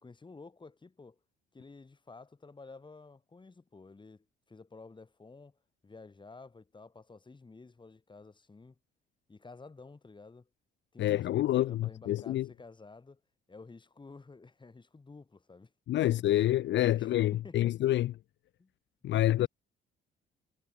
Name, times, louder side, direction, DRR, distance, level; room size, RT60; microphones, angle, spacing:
voice 1, 0.0-1.2 1.5-5.6 5.8-8.8 9.3-10.5 10.9-13.2 13.5-15.7 16.0-16.3 16.8-17.7 18.6-18.7 19.1-19.5, left 3 dB, 25° left, 3.0 m, -52 dB
voice 2, 11.0-12.5 15.9-18.1 19.0-19.5, left 14 dB, 65° left, 0.5 m, -27 dB
cardioid pair, 90°, 20 cm